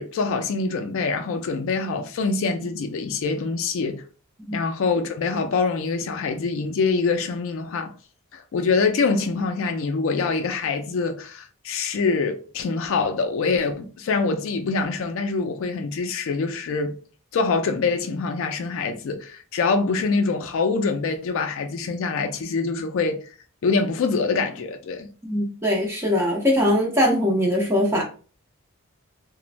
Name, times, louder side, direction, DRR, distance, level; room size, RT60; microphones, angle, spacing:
voice 1, 0.0-4.0 4.5-7.9 8.3-17.0 17.3-23.2 23.6-25.1, left 4 dB, 60° left, 0.3 m, -25 dB
voice 2, 25.2-28.0, left 1 dB, 10° right, 0.6 m, -21 dB
3.1 x 2.1 x 2.4 m
head